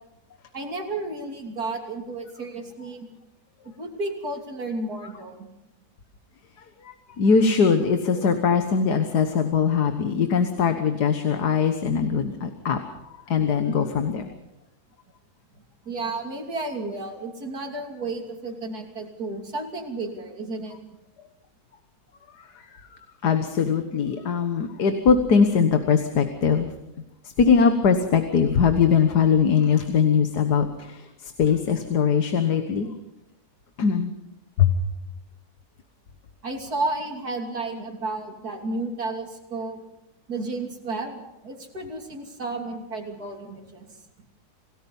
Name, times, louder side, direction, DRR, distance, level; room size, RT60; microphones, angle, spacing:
voice 1, 0.5-3.1 3.8-5.5 15.5-20.8 36.4-39.8 40.3-43.9, right 2 dB, 70° right, 3 dB, 3.5 m, -32 dB
voice 2, 6.6-12.8 13.3-14.3 22.3-22.6 22.9-26.7 27.4-32.9 33.8-34.1 34.6-34.8, left 6 dB, 85° left, 7 dB, 1.9 m, -21 dB
27.5 x 18.0 x 5.5 m, 0.95 s
omnidirectional pair, 1.7 m